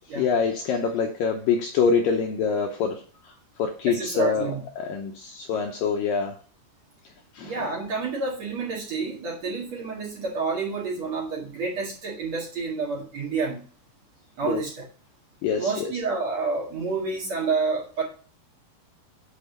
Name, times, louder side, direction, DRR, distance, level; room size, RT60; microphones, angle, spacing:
voice 1, 0.2-3.0 3.6-4.5 4.8-6.3 7.4-7.7 14.4-14.6 15.4-15.9, left 5 dB, 75° left, 2 dB, 2.1 m, -25 dB
voice 2, 3.9-4.6 7.4-13.6 14.4-14.8 15.6-18.0, right 4 dB, 45° right, -3 dB, 2.7 m, -29 dB
8.7 x 4.1 x 6.6 m, 0.40 s
omnidirectional pair, 4.9 m